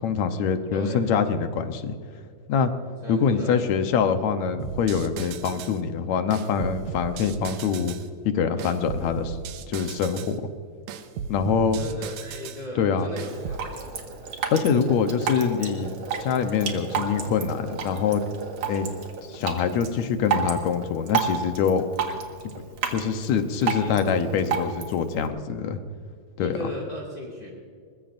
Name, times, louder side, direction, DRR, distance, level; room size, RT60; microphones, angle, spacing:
voice 1, 0.0-2.0 2.5-2.7 3.1-8.0 8.3-9.4 9.7-10.5 11.3-11.8 12.8-13.1 14.5-18.3 18.7-18.9 19.3-21.9 22.9-25.8 26.4-26.6, left 6 dB, 75° left, 8 dB, 2.2 m, -24 dB
voice 2, 0.7-1.3 3.0-3.6 11.7-13.9 23.6-24.2 26.4-27.5, left 1 dB, 35° left, -1 dB, 2.5 m, -37 dB
sound 1, 4.6-5.8 6.3-8.1 8.6-10.4 10.9-12.6 13.2-13.7, right 7 dB, 80° right, 2.2 m, -36 dB
Drip, 13.3-25.3, right 6 dB, 60° right, 2.6 m, -32 dB
22.0 x 21.0 x 2.6 m, 2.2 s
omnidirectional pair, 3.3 m